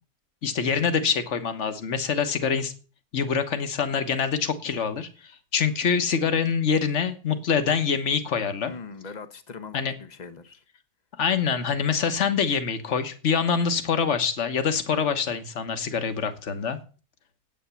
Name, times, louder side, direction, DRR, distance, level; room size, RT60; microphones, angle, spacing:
voice 1, 0.4-2.7 3.1-8.7 9.7-9.9 11.2-16.8, left 6 dB, 50° left, 1.5 m, -25 dB
voice 2, 8.6-10.6, left 4 dB, 30° left, 1.0 m, -41 dB
9.1 x 8.8 x 7.0 m
omnidirectional pair, 1.6 m